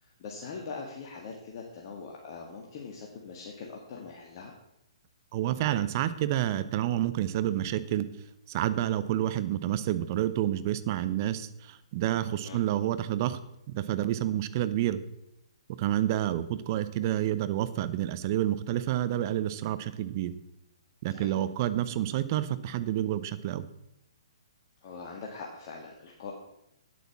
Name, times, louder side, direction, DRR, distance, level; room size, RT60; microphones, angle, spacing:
voice 1, 0.0-4.5 12.4-12.6 21.1-21.3 24.8-26.3, left 4 dB, 40° left, 0 dB, 1.7 m, -42 dB
voice 2, 5.3-8.1 8.5-13.4 13.7-15.0 15.8-20.3 21.0-23.7, right 12 dB, 40° right, 13 dB, 0.7 m, -29 dB
9.4 x 8.4 x 5.9 m, 0.83 s
figure-of-eight pair, 125°, 3 cm